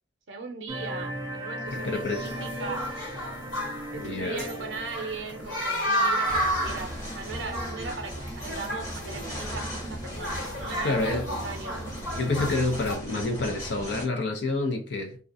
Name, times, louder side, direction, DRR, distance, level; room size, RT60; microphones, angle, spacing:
voice 1, 0.3-2.9 3.9-11.8, right 4 dB, 80° right, 0.5 m, -39 dB
sound 1, 0.7-5.8, equal, 15° right, 0.5 m, -37 dB
sound 2, 1.7-13.0, equal, 90° left, 1.4 m, -33 dB
voice 2, 1.7-2.3 3.9-4.5 10.8-11.3 12.1-15.2, left 2 dB, 70° left, 0.5 m, -28 dB
sound 3, 6.2-14.1, equal, 20° left, 0.9 m, -37 dB
2.4 x 2.1 x 2.5 m
head